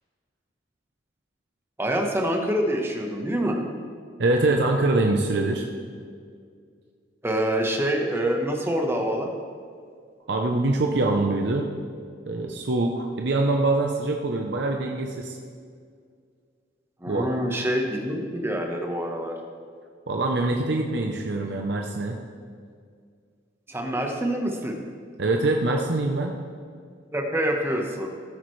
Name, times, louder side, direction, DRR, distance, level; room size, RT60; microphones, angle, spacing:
voice 1, 1.8-3.6 7.2-9.3 17.0-19.4 23.7-24.8 27.1-28.1, right 1 dB, 15° right, 2 dB, 1.1 m, -26 dB
voice 2, 4.2-5.7 10.3-11.7 12.3-15.4 17.1-17.3 20.1-22.2 25.2-26.3, right 2 dB, 65° right, 2 dB, 0.7 m, -24 dB
14.5 x 8.8 x 3.2 m, 2.1 s
head